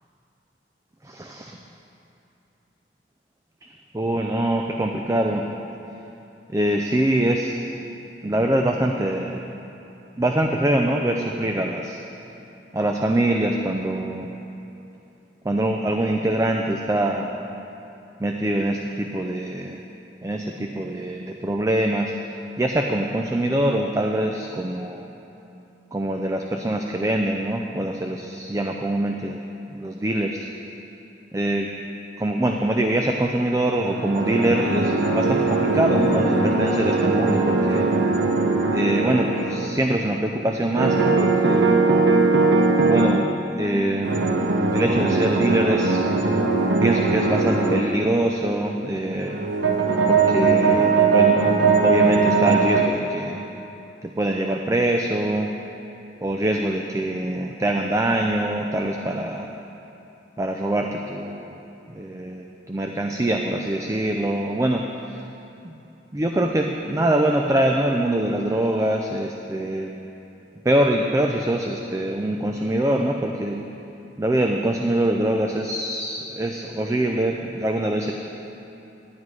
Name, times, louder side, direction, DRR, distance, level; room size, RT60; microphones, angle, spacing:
voice 1, 1.1-1.6 3.7-5.4 6.5-7.6 8.2-9.4 10.2-12.0 12.7-14.3 15.4-17.3 18.2-19.8 20.2-25.1 25.9-29.4 29.7-30.5 31.3-31.7 32.2-37.9 38.7-41.7 42.8-43.3 43.6-44.1 44.7-46.1 46.8-49.4 50.1-51.5 51.8-53.4 54.0-55.5 56.2-59.5 60.4-61.6 61.9-65.2 65.6-65.8 66.1-69.9 70.6-73.6 74.2-78.1, right 1 dB, 15° right, 2 dB, 0.4 m, -24 dB
sound 1, 33.8-39.9 40.7-43.3 44.0-47.8 49.1-52.9, right 3 dB, 85° right, 0.8 m, -20 dB
11.0 x 9.4 x 4.7 m, 2.9 s
head